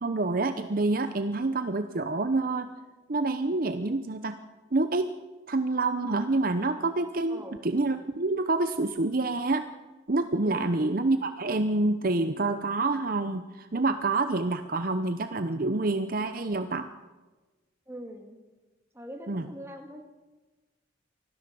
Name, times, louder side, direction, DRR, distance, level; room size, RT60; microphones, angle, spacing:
voice 1, 0.0-2.7 3.1-4.4 4.7-5.1 5.5-9.6 10.1-16.9 19.3-19.5, right 2 dB, 45° right, 9 dB, 0.8 m, -27 dB
voice 2, 10.4-10.8 17.9-18.4 18.9-20.0, equal, 15° right, 3 dB, 2.4 m, -42 dB
24.5 x 16.5 x 7.0 m, 1.2 s
head